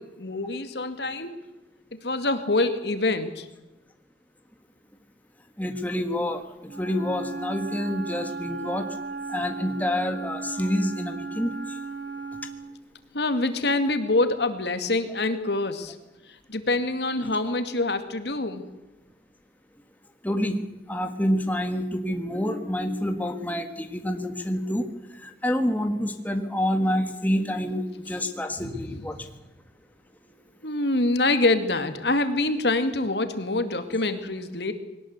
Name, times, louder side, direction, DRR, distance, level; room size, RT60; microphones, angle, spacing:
voice 1, 0.0-1.5 1.9-3.5 13.1-16.0 16.3-18.6 28.6-29.0 30.6-34.7, left 2 dB, 75° left, 9 dB, 2.2 m, -26 dB
voice 2, 5.6-6.4 6.8-8.9 9.3-11.5 20.2-20.6 20.9-24.9 25.2-29.2, left 1 dB, 10° left, 6 dB, 1.5 m, -27 dB
Wind instrument woodwind instrument, 6.6-12.7, right 4 dB, 80° right, 4.6 m, -35 dB
21.0 x 18.5 x 8.2 m, 1.0 s
head